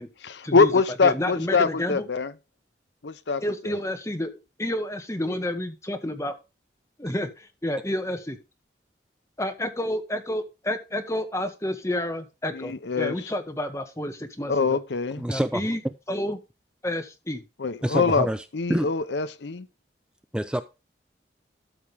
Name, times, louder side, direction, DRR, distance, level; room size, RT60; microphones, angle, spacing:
voice 1, 0.2-2.3 3.0-3.4 12.5-13.1 14.5-15.3 17.6-18.3 18.5-19.7, left 4 dB, 75° left, 0.7 m, -23 dB
voice 2, 1.0-2.1 3.4-4.3 4.6-6.3 7.0-8.4 9.4-14.8 15.3-15.8 16.1-16.4 16.8-17.4, left 1 dB, 15° left, 1.5 m, -30 dB
voice 3, 15.2-15.6 17.8-18.4 18.7-18.9 20.3-20.6, equal, 5° right, 0.4 m, -26 dB
13.0 x 6.2 x 3.5 m
head